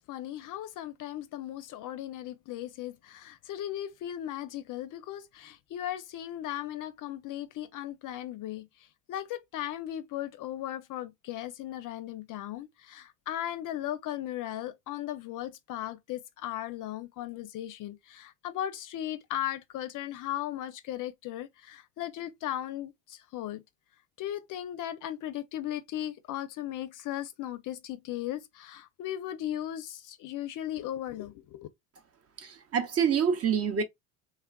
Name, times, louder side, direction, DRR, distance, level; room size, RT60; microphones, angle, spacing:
voice 1, 0.0-23.6 24.2-31.7, left 12 dB, 45° left, 0.5 m, -37 dB
voice 2, 32.4-33.8, right 7 dB, 35° right, 0.6 m, -26 dB
3.3 x 2.3 x 2.2 m
supercardioid pair, 85°, 44 cm